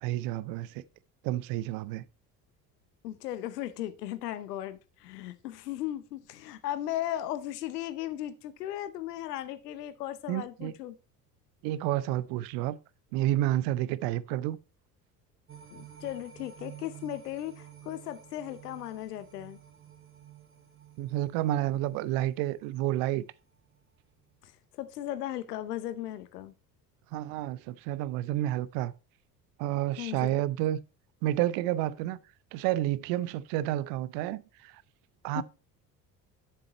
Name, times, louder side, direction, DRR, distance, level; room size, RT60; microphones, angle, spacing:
voice 1, 0.0-0.8 1.2-2.0 10.3-10.7 11.6-12.8 13.1-14.6 21.0-23.2 27.1-28.9 29.6-30.8 31.2-32.2 32.5-34.8 35.2-35.4, right 14 dB, 45° right, 0.5 m, -30 dB
voice 2, 3.0-11.0 15.7-19.6 24.4-24.5 24.8-26.5 30.0-30.3 35.4-35.5, left 13 dB, 70° left, 0.8 m, -36 dB
sound 1, 15.5-23.9 24.3-24.4, right 10 dB, 25° right, 1.3 m, -52 dB
7.6 x 6.4 x 4.1 m
figure-of-eight pair, 60°, 50 cm